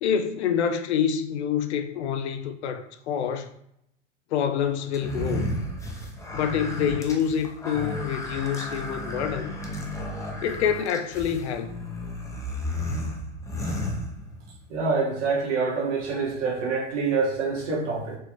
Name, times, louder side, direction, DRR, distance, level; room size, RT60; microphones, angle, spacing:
voice 1, 0.0-3.5 4.3-5.5 6.3-9.5 10.4-11.7, left 8 dB, 65° left, 0.5 m, -27 dB
sound 1, 4.9-14.6, left 1 dB, 10° left, 0.5 m, -33 dB
voice 2, 14.7-18.2, right 4 dB, 75° right, 1.5 m, -26 dB
4.4 x 3.3 x 3.0 m
hypercardioid pair, 100°, 36 cm